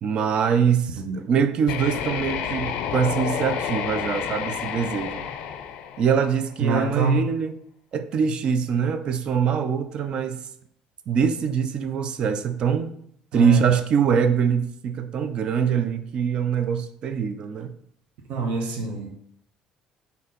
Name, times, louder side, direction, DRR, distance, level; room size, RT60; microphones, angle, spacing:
voice 1, 0.0-5.3 6.0-7.5 7.9-10.5 11.1-12.9 13.3-17.7, right 7 dB, 45° right, 0.3 m, -23 dB
sound 1, 1.6-6.6, left 8 dB, 75° left, 0.4 m, -30 dB
voice 2, 6.6-7.2 13.3-13.6 18.3-19.1, right 3 dB, 70° right, 0.9 m, -25 dB
4.2 x 2.7 x 3.8 m
cardioid pair, 150°, 2 cm